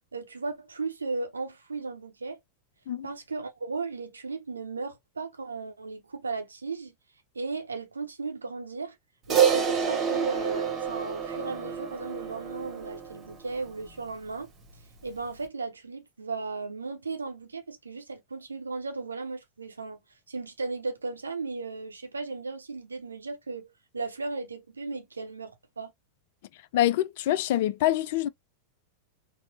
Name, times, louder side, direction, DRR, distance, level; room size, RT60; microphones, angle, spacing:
voice 1, 0.1-2.4 3.0-6.9 7.3-9.0 9.3-14.5 15.0-20.0 20.3-25.9, right 3 dB, 75° right, 0.6 m, -36 dB
Crash cymbal, 9.3-13.9, right 7 dB, 25° right, 1.0 m, -28 dB
voice 2, 26.7-28.3, left 13 dB, 50° left, 0.3 m, -25 dB
4.2 x 2.0 x 2.7 m
figure-of-eight pair, 90°, 0 cm